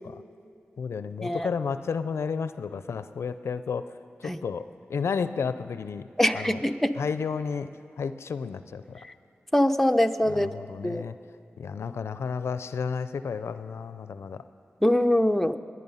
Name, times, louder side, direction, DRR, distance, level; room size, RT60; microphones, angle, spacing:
voice 1, 0.8-3.8 4.2-4.6 4.9-6.1 6.3-6.6 6.9-7.7 8.0-8.8 10.3-11.1 11.6-14.4, left 6 dB, 80° left, 12 dB, 0.4 m, -32 dB
voice 2, 6.2-7.0 9.5-10.5 10.8-11.1 14.8-15.6, left 1 dB, 5° left, 8 dB, 0.6 m, -23 dB
21.5 x 9.6 x 5.5 m, 2.5 s
cardioid pair, 50°, 4 cm